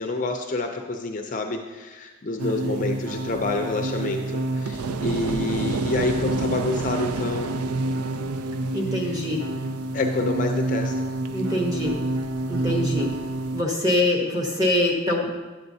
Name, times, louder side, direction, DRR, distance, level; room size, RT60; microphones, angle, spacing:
voice 1, 0.0-7.5 8.9-9.2 9.9-11.1, left 3 dB, 35° left, 4 dB, 0.5 m, -28 dB
sound 1, 2.4-13.6, right 2 dB, 90° right, 0.4 m, -28 dB
voice 2, 8.7-9.4 11.3-12.0 12.5-13.1 13.5-15.3, left 1 dB, 15° right, -1 dB, 1.0 m, -24 dB
9.8 x 7.8 x 2.7 m, 1.3 s
head